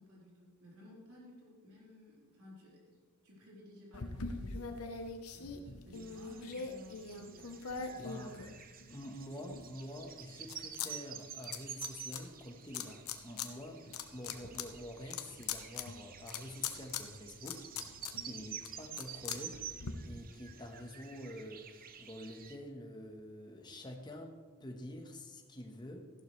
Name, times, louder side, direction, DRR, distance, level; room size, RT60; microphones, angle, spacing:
voice 1, 0.0-4.9 5.3-7.6 7.9-8.5, left 1 dB, 80° right, -5 dB, 4.0 m, -56 dB
sound 1, 3.9-9.0 9.5-10.9 11.2-12.2 12.7-13.5 13.8-19.9, left 6 dB, 85° left, 1.0 m, -42 dB
sound 2, 5.9-22.6, right 8 dB, 40° right, 0.7 m, -50 dB
voice 2, 8.0-8.3 8.9-17.6 18.2-19.6 20.0-26.1, left 1 dB, 20° left, 2 dB, 1.2 m, -47 dB
14.5 x 11.5 x 3.3 m, 1.5 s
head